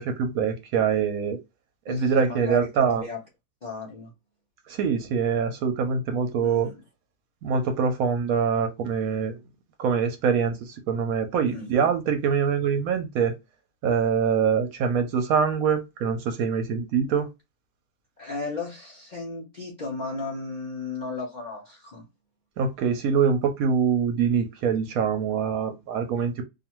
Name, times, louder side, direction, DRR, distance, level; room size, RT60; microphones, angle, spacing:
voice 1, 0.0-1.4 1.9-3.0 4.7-6.7 7.4-9.4 9.8-13.3 13.8-17.3 22.6-26.4, right 6 dB, 70° right, 0.9 m, -24 dB
voice 2, 1.9-3.2 3.6-4.1 6.4-6.8 11.4-11.9 18.2-22.0, left 3 dB, 55° left, 0.4 m, -35 dB
2.5 x 2.4 x 2.9 m
omnidirectional pair, 1.7 m